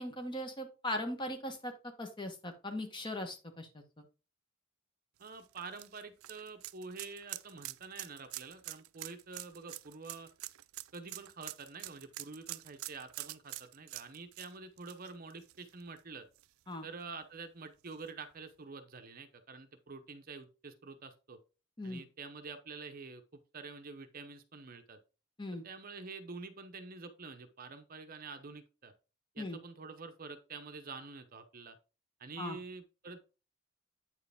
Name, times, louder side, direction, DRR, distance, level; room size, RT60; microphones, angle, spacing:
voice 1, 0.0-4.0 16.7-16.9 21.8-22.0 25.4-25.6 29.4-29.6 32.4-32.6, left 1 dB, 20° left, 6 dB, 1.1 m, -39 dB
voice 2, 5.2-10.3 10.9-16.3 16.8-21.4 21.8-25.0 25.6-28.9 29.3-31.8 32.2-33.2, right 4 dB, 45° right, 8 dB, 0.7 m, -47 dB
sound 1, 5.2-16.0 16.4-16.5 17.9-18.0, right 17 dB, 90° right, 0.4 m, -46 dB
8.8 x 4.6 x 3.4 m, 0.33 s
head